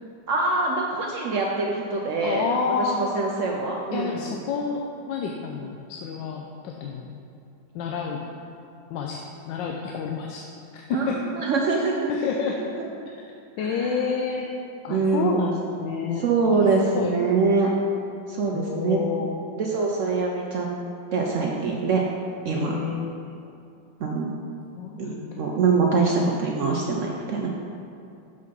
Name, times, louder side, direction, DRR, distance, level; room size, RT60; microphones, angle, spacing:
voice 1, 0.3-2.5 2.8-4.5 10.9-11.1 11.3-12.1 12.8-12.9 13.6-14.0 14.9-15.4 16.2-17.7 18.3-19.0 19.6-20.7 21.1-22.0 22.4-22.7 24.0-24.3 25.0-27.5, right 4 dB, 90° right, -1 dB, 0.6 m, -24 dB
voice 2, 2.2-3.0 3.9-7.2 7.7-8.2 8.9-11.2 12.1-12.6 13.6-14.5 14.8-17.1 18.5-19.3 22.5-23.2 24.8-25.4, left 6 dB, 80° left, 1 dB, 1.2 m, -29 dB
6.6 x 5.2 x 5.2 m, 2.7 s
omnidirectional pair, 2.1 m